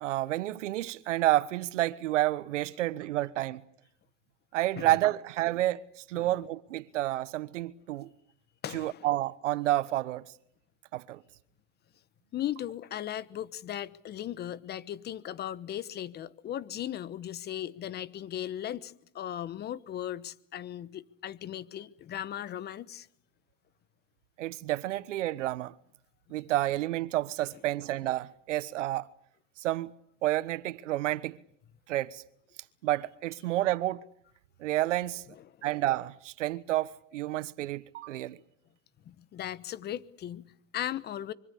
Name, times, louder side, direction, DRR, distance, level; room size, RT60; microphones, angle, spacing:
voice 1, 0.0-3.6 4.5-8.1 8.7-10.2 10.9-11.2 24.4-25.7 26.3-29.1 29.6-29.9 30.2-31.4 31.9-32.2 32.8-34.0 34.6-35.2 35.6-38.4, right 15 dB, 75° right, 1.4 m, -30 dB
voice 2, 8.6-9.1 12.3-23.1 35.4-35.7 39.0-41.3, left 11 dB, 25° left, 1.1 m, -37 dB
25.0 x 24.5 x 8.5 m
hypercardioid pair, 125°, 37 cm